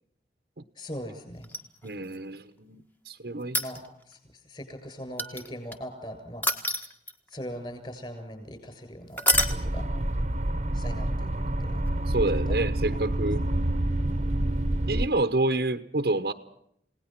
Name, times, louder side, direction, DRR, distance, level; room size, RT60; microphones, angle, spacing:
voice 1, 0.8-1.5 3.6-6.4 7.3-9.9 10.7-11.8 12.5-12.6 12.9-13.0, equal, 30° left, 7 dB, 7.4 m, -40 dB
sound 1, 1.4-2.2 3.4-4.1 5.2-5.8 6.4-7.3 9.2-9.6 11.9-12.0, left 1 dB, 10° left, 1.6 m, -27 dB
voice 2, 1.8-3.6 12.1-13.4 14.9-16.3, right 2 dB, 60° right, 8 dB, 1.1 m, -28 dB
sound 2, 9.3-15.1, right 1 dB, 40° right, 1.1 m, -28 dB
29.5 x 18.5 x 6.0 m, 0.72 s
head